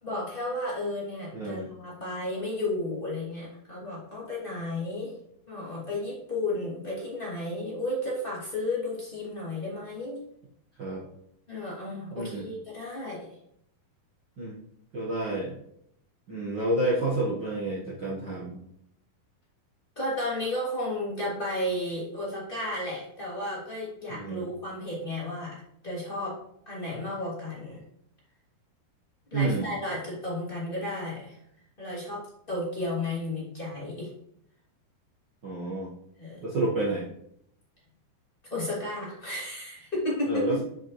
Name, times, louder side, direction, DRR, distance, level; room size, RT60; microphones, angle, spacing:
voice 1, 0.0-5.1 5.5-10.2 11.5-13.3 20.0-25.6 25.8-26.4 26.7-27.8 29.3-31.4 31.8-34.1 36.2-36.5 38.5-40.4, left 1 dB, 15° left, -7 dB, 2.4 m, -33 dB
voice 2, 1.3-1.7 10.8-11.0 12.1-12.5 14.4-14.6 14.9-15.5 16.3-18.6 24.1-24.4 29.3-29.7 35.4-35.9 36.4-37.1 40.3-40.6, right 2 dB, 70° right, -6 dB, 1.0 m, -29 dB
7.8 x 7.2 x 3.2 m, 0.73 s
omnidirectional pair, 4.4 m